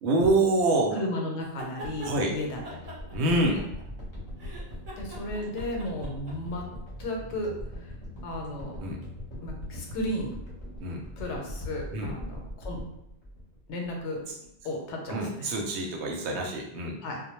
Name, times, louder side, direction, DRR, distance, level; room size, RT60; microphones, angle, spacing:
voice 1, 0.0-1.0 2.0-2.3 3.1-3.6 8.8-9.0 10.8-11.0 11.9-12.1 15.1-17.0, right 2 dB, 75° right, 1 dB, 0.8 m, -26 dB
voice 2, 1.0-2.8 5.0-6.6 7.0-7.9 8.2-8.8 9.4-10.4 11.2-12.8 13.7-14.2 14.6-15.5 17.0-17.2, left 1 dB, 80° left, 1 dB, 0.9 m, -34 dB
sound 1, 1.4-2.1 2.6-4.0 4.4-6.6, equal, 45° right, 0.6 m, -43 dB
sound 2, 1.8-14.1 14.5-14.6, left 1 dB, 30° left, 0.7 m, -41 dB
2.1 x 2.1 x 3.0 m, 0.81 s
omnidirectional pair, 1.2 m